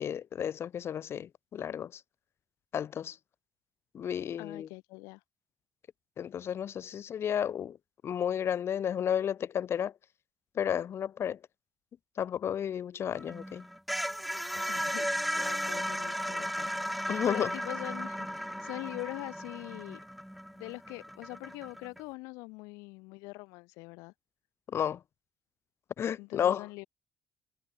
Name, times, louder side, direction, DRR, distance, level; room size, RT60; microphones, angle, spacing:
voice 1, 0.0-2.0 2.7-3.2 3.9-4.7 6.2-7.8 8.0-9.9 10.6-11.4 12.2-13.6 14.5-14.7 17.1-17.5 24.7-25.0 26.0-26.6, left 9 dB, 50° left, 1.9 m, -32 dB
voice 2, 4.4-5.2 14.7-20.0 20.6-24.1 26.2-26.9, left 25 dB, 75° left, 1.1 m, -43 dB
sound 1, 13.1-22.0, equal, ahead, 1.0 m, -35 dB
hypercardioid pair, 60°, 5 cm